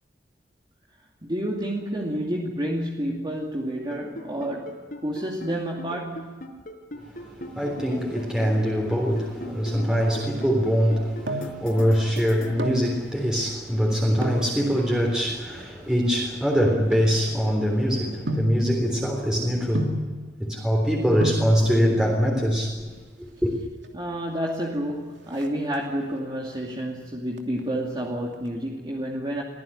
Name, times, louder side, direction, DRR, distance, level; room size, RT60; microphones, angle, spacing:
voice 1, 1.2-6.4 15.6-15.8 23.9-29.4, right 1 dB, 25° right, 2.5 m, -30 dB
sound 1, 3.8-12.5, equal, 55° left, 4.7 m, -37 dB
voice 2, 7.0-20.0 20.4-22.9 23.2-23.5, equal, 5° right, 3.6 m, -23 dB
sound 2, 10.8-11.7 12.4-12.9 14.1-14.5 15.2-17.6 18.3-18.7 19.7-20.2 20.9-21.0 21.2-21.6 22.7-23.2 23.5-23.6 23.8-24.0 24.3-24.7 25.0-26.1 26.5-26.9 27.3-28.5 28.7-28.8, equal, 85° right, 2.8 m, -32 dB
23.5 x 15.5 x 10.0 m
head